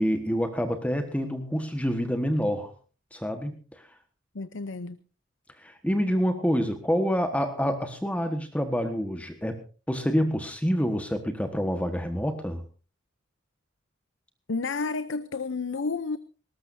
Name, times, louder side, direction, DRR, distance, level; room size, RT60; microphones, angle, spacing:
voice 1, 0.0-2.7 3.1-3.8 5.6-9.6 9.9-12.6, equal, 5° left, 7 dB, 1.4 m, -27 dB
voice 2, 4.3-5.0 14.5-16.2, left 4 dB, 70° left, 14 dB, 0.6 m, -31 dB
20.0 x 18.5 x 2.7 m, 0.35 s
head